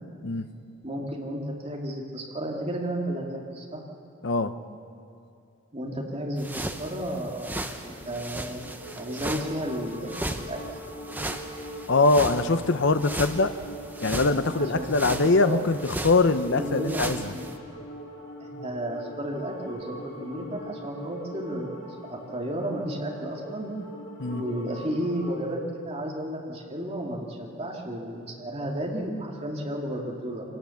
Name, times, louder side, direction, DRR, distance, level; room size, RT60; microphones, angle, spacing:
voice 1, 0.2-0.5 4.2-4.6 11.9-13.5 14.0-17.3 24.2-24.5, left 3 dB, 55° left, 11 dB, 0.8 m, -23 dB
voice 2, 0.8-3.8 5.7-8.6 8.9-10.6 14.6-15.6 16.5-17.5 18.4-21.7 22.1-23.7 24.3-30.4, right 1 dB, 30° right, -1 dB, 2.3 m, -33 dB
sound 1, 6.4-17.6, right 1 dB, 10° right, 0.8 m, -36 dB
sound 2, 7.9-25.5, equal, 85° left, 3.2 m, -42 dB
24.5 x 18.0 x 7.1 m, 2.7 s
head